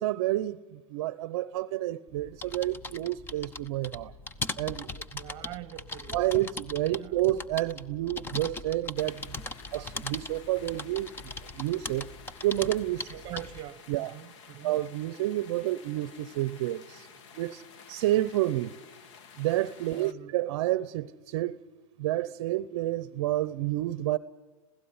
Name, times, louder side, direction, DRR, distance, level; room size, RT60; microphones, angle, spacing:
voice 1, 0.0-4.1 4.6-5.0 6.1-9.4 9.7-11.1 11.5-12.1 12.4-13.1 13.9-14.1 14.6-17.1 17.3-17.6 17.9-18.7 19.4-21.6 22.0-24.2, right 15 dB, 45° right, 0.8 m, -29 dB
sound 1, 2.1-13.7, left 3 dB, 10° left, 0.7 m, -40 dB
voice 2, 5.2-6.2 7.0-7.2 9.7-9.8 13.1-14.8 19.9-20.3, right 14 dB, 25° right, 1.0 m, -43 dB
sound 2, 9.0-20.1, left 6 dB, 50° left, 1.6 m, -52 dB
26.5 x 16.5 x 9.7 m
hypercardioid pair, 145°, 19 cm